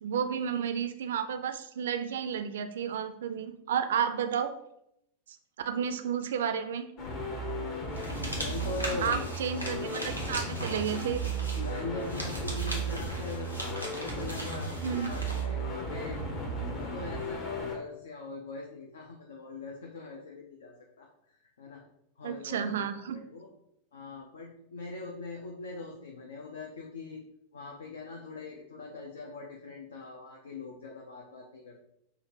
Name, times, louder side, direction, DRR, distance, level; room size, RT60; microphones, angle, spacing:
voice 1, 0.0-4.5 5.7-6.9 9.0-11.2 14.8-15.1 22.2-23.2, right 8 dB, 60° right, 9 dB, 0.3 m, -31 dB
sound 1, 7.0-17.8, right 2 dB, 35° left, 0.9 m, -35 dB
sound 2, 7.9-15.5, equal, 85° left, 0.8 m, -40 dB
voice 2, 8.0-9.3 11.5-16.2 16.7-21.8 22.2-23.5 23.9-27.2 27.5-31.8, left 3 dB, 65° left, 0 dB, 0.5 m, -41 dB
5.1 x 2.4 x 2.8 m, 0.77 s
figure-of-eight pair, 90°, 0 cm